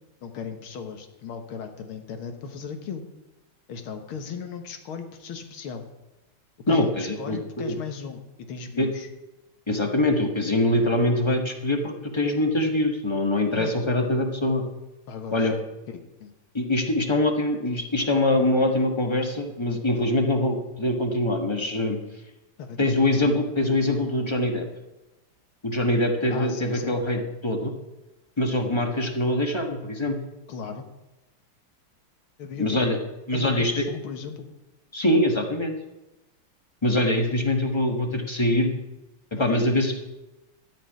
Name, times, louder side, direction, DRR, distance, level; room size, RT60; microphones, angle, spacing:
voice 1, 0.2-3.0 3.7-5.8 6.7-8.2 8.5-9.1 13.5-13.7 15.1-16.3 22.6-23.0 26.3-26.9 28.9-29.1 30.5-30.9 32.4-32.8 33.3-34.5 39.4-39.7, left 6 dB, 85° left, 7 dB, 2.2 m, -37 dB
voice 2, 6.7-7.7 8.8-8.9 9.7-14.6 15.3-15.6 16.5-22.0 22.8-24.7 25.6-27.7 28.4-30.2 32.6-33.0 33.3-33.8 34.9-35.7 36.8-38.7 39.4-40.1, left 1 dB, 15° left, 4 dB, 1.2 m, -23 dB
14.0 x 6.0 x 9.4 m, 1.0 s
omnidirectional pair, 2.3 m